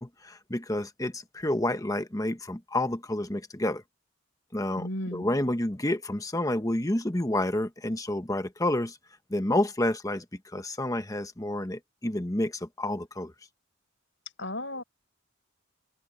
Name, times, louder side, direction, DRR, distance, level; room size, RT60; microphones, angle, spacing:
voice 1, 0.0-3.8 4.5-9.0 9.3-10.2 10.5-13.3, left 1 dB, 15° left, 1.2 m, -29 dB
voice 2, 4.8-5.3 14.4-14.8, left 1 dB, 65° left, 5.9 m, -34 dB
open air
head